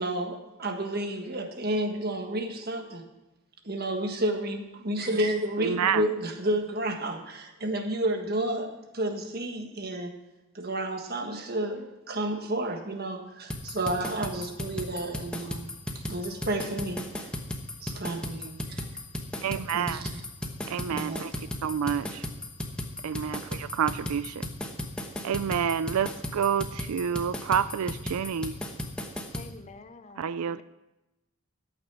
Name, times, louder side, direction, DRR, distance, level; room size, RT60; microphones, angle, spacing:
voice 1, 0.0-3.0 3.6-10.1 10.5-15.6 16.1-17.3 17.8-18.9 19.7-20.2 20.9-21.3, right 1 dB, 45° right, 4 dB, 1.5 m, -31 dB
voice 2, 5.6-6.1 19.4-20.0 20.7-21.3 21.6-22.3 23.0-24.5 25.2-28.5 30.2-30.6, right 8 dB, 85° right, 15 dB, 0.4 m, -28 dB
sound 1, 13.5-29.5, left 1 dB, 5° left, 1.0 m, -35 dB
voice 3, 29.3-30.6, left 3 dB, 30° left, 10 dB, 0.6 m, -48 dB
13.0 x 8.7 x 6.0 m, 0.99 s
head